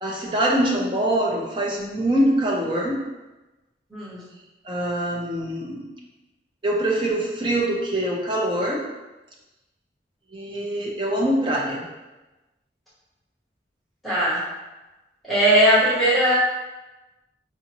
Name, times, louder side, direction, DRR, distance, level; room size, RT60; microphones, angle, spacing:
voice 1, 0.0-3.0 4.6-5.9 6.6-8.8 10.3-11.8, right 1 dB, 25° right, -3 dB, 0.7 m, -24 dB
voice 2, 14.0-14.4 15.3-16.3, equal, ahead, -13 dB, 1.5 m, -19 dB
4.7 x 2.6 x 3.0 m, 1.1 s
head